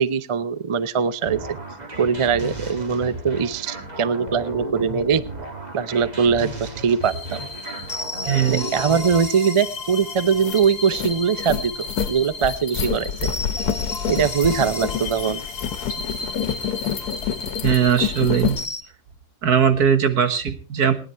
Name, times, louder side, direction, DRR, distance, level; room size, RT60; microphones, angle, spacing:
voice 1, 0.0-1.6 2.0-5.2 5.7-7.4 8.5-13.3 14.1-15.4, right 6 dB, 45° right, 15 dB, 0.4 m, -22 dB
sound 1, 1.2-9.3, right 1 dB, 30° right, 1.6 m, -34 dB
sound 2, 7.0-18.8, left 3 dB, 40° left, 2.0 m, -33 dB
voice 2, 8.3-8.7 17.6-18.6 19.4-20.9, right 8 dB, 75° right, 9 dB, 1.9 m, -19 dB
Backpack Movements, 9.8-9.9 10.2-18.6, left 8 dB, 85° left, 1.5 m, -28 dB
19.5 x 10.0 x 4.5 m, 0.38 s
omnidirectional pair, 1.6 m